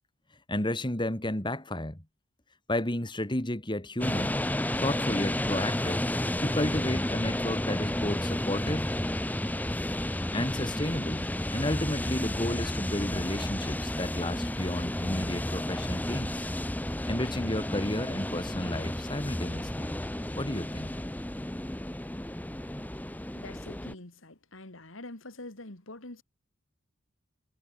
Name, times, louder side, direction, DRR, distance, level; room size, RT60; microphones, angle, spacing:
voice 1, 0.5-2.0 2.7-4.4 4.8-6.0 6.4-9.0 10.3-16.5 17.1-19.9 20.4-21.0, left 1 dB, 25° left, 2.7 m, -32 dB
sound 1, 4.0-23.9, left 1 dB, 10° left, 0.9 m, -32 dB
voice 2, 23.3-26.2, left 2 dB, 75° left, 2.9 m, -45 dB
head